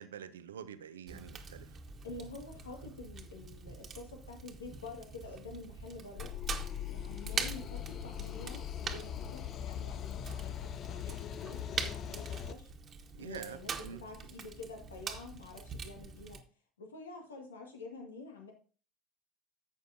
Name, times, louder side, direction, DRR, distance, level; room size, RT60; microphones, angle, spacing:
voice 1, 0.0-1.8 13.1-14.0, right 8 dB, 80° right, 0.6 m, -46 dB
Fire, 1.1-16.4, right 5 dB, 40° right, 1.3 m, -44 dB
voice 2, 2.0-6.4 6.9-12.7 13.2-16.4 16.8-18.5, left 3 dB, 85° left, 1.8 m, -48 dB
sound 1, 6.2-12.5, left 11 dB, 45° left, 0.5 m, -41 dB
11.5 x 8.1 x 2.6 m
figure-of-eight pair, 65°, 0 cm